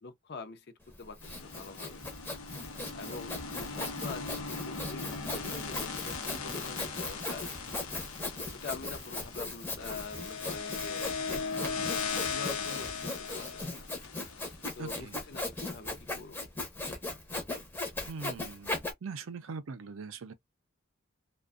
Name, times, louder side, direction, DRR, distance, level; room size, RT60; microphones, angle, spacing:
voice 1, 0.0-2.1 2.9-7.5 8.5-11.2 12.3-13.8 14.8-16.5, left 4 dB, 50° left, 0.5 m, -45 dB
Sawing, 0.9-18.9, left 2 dB, 10° left, 0.6 m, -38 dB
sound 1, 1.2-15.4, left 5 dB, 85° left, 0.7 m, -39 dB
voice 2, 14.8-15.2 18.1-20.3, right 4 dB, 70° right, 0.5 m, -41 dB
2.5 x 2.2 x 2.4 m
head